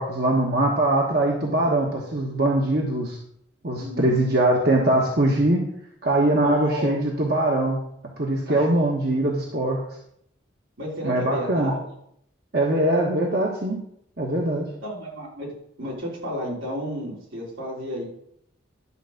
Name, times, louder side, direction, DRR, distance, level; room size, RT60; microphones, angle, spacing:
voice 1, 0.0-3.2 3.6-5.6 6.0-7.8 8.2-9.8 11.0-11.7 12.5-13.8 14.2-14.6, right 1 dB, 55° right, -1 dB, 1.3 m, -22 dB
voice 2, 3.7-4.1 6.3-6.9 8.5-8.7 9.1-9.2 10.8-11.8 14.8-15.5 15.8-18.0, equal, 85° right, -4 dB, 4.0 m, -32 dB
11.5 x 4.6 x 6.5 m, 0.72 s
head